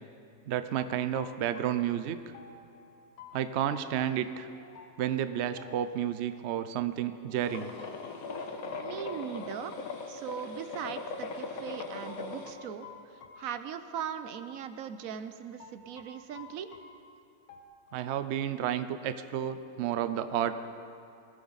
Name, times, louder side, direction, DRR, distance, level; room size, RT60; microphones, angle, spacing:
voice 1, 0.5-2.2 3.3-4.5 5.0-7.7 17.9-20.5, right 10 dB, 80° right, 11 dB, 0.6 m, -31 dB
sound 1, 0.7-6.5 8.3-10.6 10.8-11.0 12.1-14.3 14.6-14.8 15.6-17.6, left 5 dB, 80° left, 1.7 m, -53 dB
sound 2, 7.4-12.5, left 4 dB, 55° left, 1.5 m, -39 dB
voice 2, 8.8-9.7 10.1-16.7, right 8 dB, 65° right, 10 dB, 0.9 m, -39 dB
20.0 x 14.5 x 4.0 m, 2.6 s
omnidirectional pair, 1.9 m